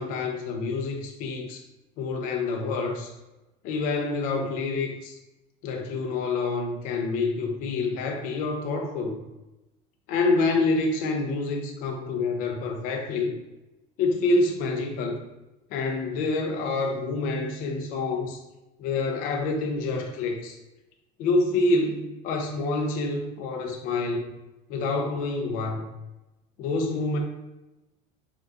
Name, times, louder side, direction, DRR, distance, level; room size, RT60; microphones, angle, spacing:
voice 1, 0.0-1.6 2.0-3.1 3.6-5.1 5.6-9.1 10.1-13.3 14.0-15.2 15.7-18.4 18.8-20.6 21.2-24.3 24.7-25.9 26.6-27.2, left 3 dB, 50° left, 2 dB, 0.4 m, -27 dB
3.5 x 2.2 x 2.6 m, 1.0 s
cardioid pair, 165°, 19 cm